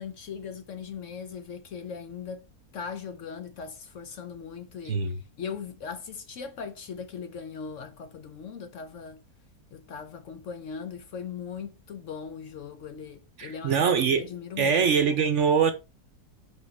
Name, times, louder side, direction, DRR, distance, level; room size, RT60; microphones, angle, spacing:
voice 1, 0.0-2.5 2.7-5.0 5.4-9.2 9.7-14.9, left 6 dB, 60° left, 0.9 m, -39 dB
voice 2, 4.9-5.2 13.4-14.2 14.6-15.7, right 6 dB, 55° right, 0.9 m, -23 dB
5.2 x 4.9 x 4.2 m
omnidirectional pair, 1.7 m